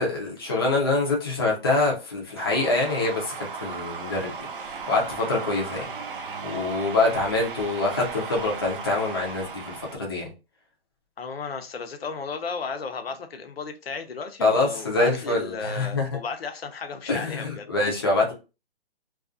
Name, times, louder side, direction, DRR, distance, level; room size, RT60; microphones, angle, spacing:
voice 1, 0.0-3.3 3.6-5.9 6.4-10.3 14.4-16.1 17.1-18.3, left 2 dB, 25° left, 0.5 m, -25 dB
sound 1, 2.3-10.0, right 5 dB, 60° right, 0.4 m, -36 dB
voice 2, 11.2-17.7, left 5 dB, 70° left, 0.7 m, -34 dB
2.4 x 2.3 x 2.4 m
hypercardioid pair, 165°, 31 cm